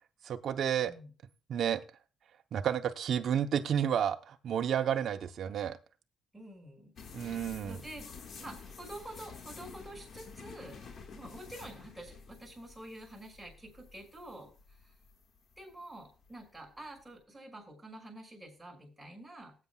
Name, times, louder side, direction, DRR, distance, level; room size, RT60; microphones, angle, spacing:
voice 1, 0.2-0.9 1.5-1.8 2.5-5.8 7.1-7.8, right 9 dB, 65° right, 6 dB, 0.8 m, -31 dB
voice 2, 6.3-6.9 7.3-8.1 8.4-10.8 11.1-14.9 15.6-19.5, right 1 dB, ahead, 2 dB, 6.0 m, -48 dB
sound 1, 7.0-17.1, left 5 dB, 60° left, 1.7 m, -50 dB
19.0 x 8.4 x 2.3 m, 0.33 s
cardioid pair, 90°, 0 cm